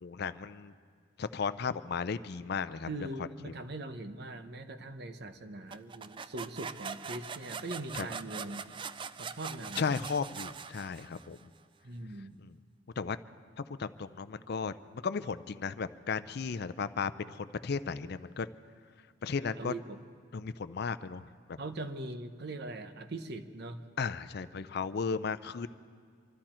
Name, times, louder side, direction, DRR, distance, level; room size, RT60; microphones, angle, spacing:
voice 1, 0.0-0.7 1.2-2.9 7.9-8.1 9.8-11.4 12.4-12.5 13.0-13.2 13.8-14.7 15.0-18.5 19.2-19.7 20.3-21.2 24.0-25.7, left 5 dB, 60° left, 14 dB, 0.5 m, -35 dB
voice 2, 2.8-8.6 9.2-10.0 11.8-12.4 19.6-20.0 21.6-23.8, right 2 dB, 60° right, 9 dB, 0.9 m, -41 dB
sound 1, 5.7-11.4, right 6 dB, 25° right, 0.3 m, -42 dB
25.0 x 13.0 x 4.4 m, 2.1 s
head